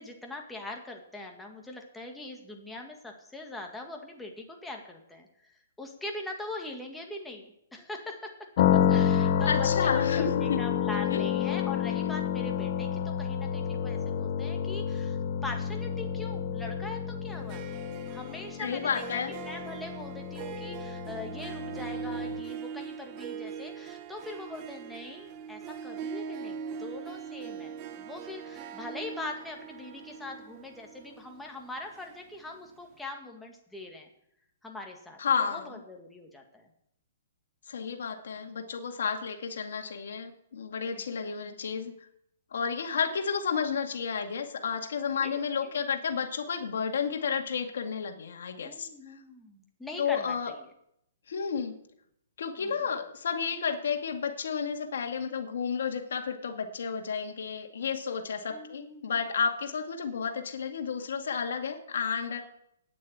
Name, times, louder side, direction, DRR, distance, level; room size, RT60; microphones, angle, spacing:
voice 1, 0.0-5.5 5.8-8.3 8.9-17.7 18.1-34.1 34.6-35.2 35.5-36.7 40.8-41.1 45.1-45.8 48.6-50.7 52.6-52.8 58.5-59.2, left 2 dB, 5° left, 1 dB, 1.9 m, -42 dB
sound 1, 8.6-22.4, left 9 dB, 50° left, 1.1 m, -29 dB
voice 2, 9.5-10.6 11.1-11.2 18.6-19.3 35.2-35.8 37.7-41.9 42.5-48.9 50.0-50.5 51.3-51.8 52.4-62.4, left 6 dB, 70° left, 4 dB, 2.2 m, -31 dB
Harp, 17.3-32.7, right 7 dB, 30° right, 0.8 m, -41 dB
9.9 x 8.4 x 8.7 m, 0.74 s
hypercardioid pair, 155°, 0 cm